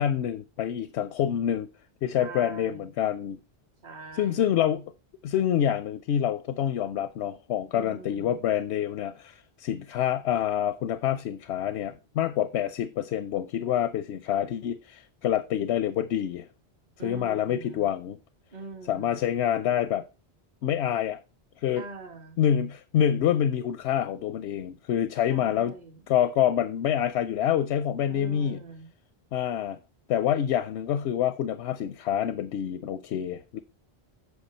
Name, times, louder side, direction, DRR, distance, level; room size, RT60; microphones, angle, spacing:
voice 1, 0.0-1.7 2.0-3.4 4.1-4.8 5.2-16.5 17.0-18.2 18.9-20.1 20.6-21.2 21.6-21.8 22.4-25.7 26.1-28.6 29.3-29.8 30.1-33.6, left 10 dB, 85° left, 0.9 m, -27 dB
voice 2, 2.2-2.9 3.8-4.6 7.7-8.4 17.0-17.9 18.5-19.3 21.7-22.4 25.3-26.0 28.1-28.9, right 3 dB, 45° right, 1.4 m, -43 dB
8.4 x 5.7 x 4.3 m
omnidirectional pair, 1.1 m